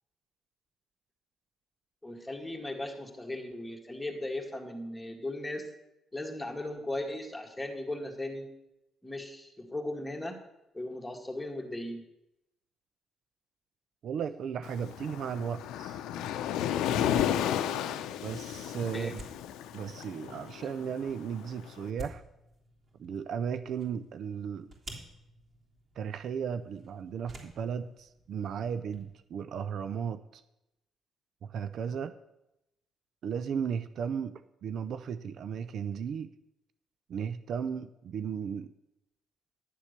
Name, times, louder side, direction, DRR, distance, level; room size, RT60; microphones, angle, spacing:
voice 1, 2.0-5.7 6.1-8.5 9.0-10.4 10.7-12.0 18.9-19.1, left 1 dB, 10° left, 2 dB, 2.1 m, -37 dB
voice 2, 14.0-16.0 18.2-19.2 19.7-22.2 23.0-24.7 26.0-30.2 31.4-32.1 33.2-36.3 37.1-38.7, right 7 dB, 65° right, 12 dB, 0.5 m, -35 dB
Waves surf, 14.6-21.7, left 10 dB, 90° left, 0.6 m, -33 dB
sound 1, 15.6-29.1, right 2 dB, 45° right, 3.3 m, -52 dB
11.0 x 7.3 x 6.7 m, 0.88 s
cardioid pair, 90°, 0 cm